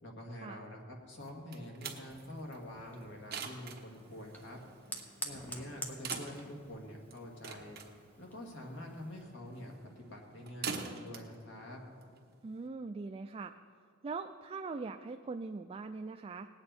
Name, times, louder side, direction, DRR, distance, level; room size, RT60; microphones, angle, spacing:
voice 1, 0.0-4.6 5.2-7.8 8.2-11.8, left 1 dB, 65° left, 0 dB, 2.1 m, -46 dB
sound 1, 1.2-12.7, right 5 dB, 55° right, 1.1 m, -46 dB
Fire, 2.0-9.2, equal, 10° left, 1.0 m, -48 dB
voice 2, 12.4-13.5 14.0-16.5, right 4 dB, 30° right, 6 dB, 0.3 m, -41 dB
19.0 x 8.8 x 4.3 m, 2.1 s
head